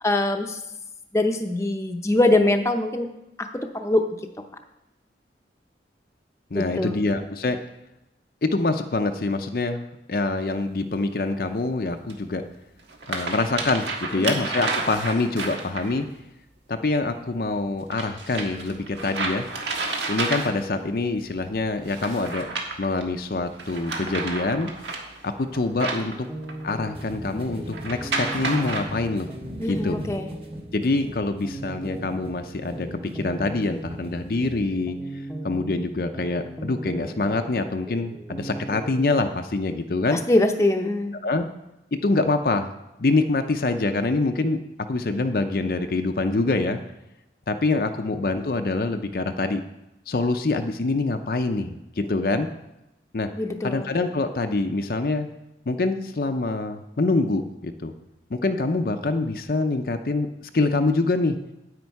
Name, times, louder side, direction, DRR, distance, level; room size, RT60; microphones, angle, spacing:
voice 1, 0.0-0.6 1.1-3.1 3.4-3.5 3.7-4.1 6.5-6.9 14.2-14.4 29.6-30.3 40.1-41.2 53.3-53.9, left 2 dB, 15° left, 4 dB, 0.7 m, -23 dB
voice 2, 6.5-7.6 8.4-12.4 13.1-16.1 16.7-19.5 20.1-22.5 22.8-24.7 25.2-26.3 26.6-29.3 29.7-30.0 30.7-35.0 35.4-40.2 41.2-41.4 41.9-42.7 43.0-44.6 44.9-46.8 47.5-49.6 50.1-52.5 53.1-53.3 53.6-55.3 55.7-57.9 58.3-60.3 60.5-61.4, left 3 dB, 55° left, 6 dB, 0.5 m, -25 dB
sound 1, 10.4-10.5 12.1-12.2 12.8-16.0 17.9-20.8 21.8-23.0 23.5-26.7 27.7-28.8, right 3 dB, 85° right, 1.6 m, -31 dB
sound 2, 25.9-39.2, right 1 dB, 10° right, 0.9 m, -38 dB
sound 3, 26.9-34.7, equal, 30° right, 1.3 m, -40 dB
9.6 x 8.7 x 4.7 m, 0.91 s
head